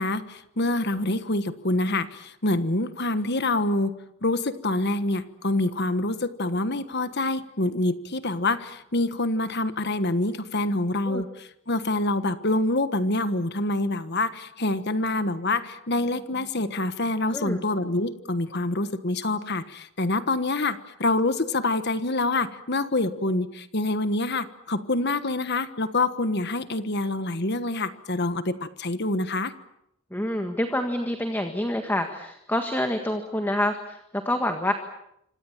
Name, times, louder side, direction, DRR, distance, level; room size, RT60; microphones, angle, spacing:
voice 1, 0.0-3.9 4.2-29.5, left 2 dB, 50° left, 11 dB, 1.4 m, -26 dB
voice 2, 17.3-17.6 30.1-34.7, left 1 dB, 10° left, 5 dB, 1.7 m, -27 dB
27.5 x 25.5 x 7.4 m, 0.78 s
head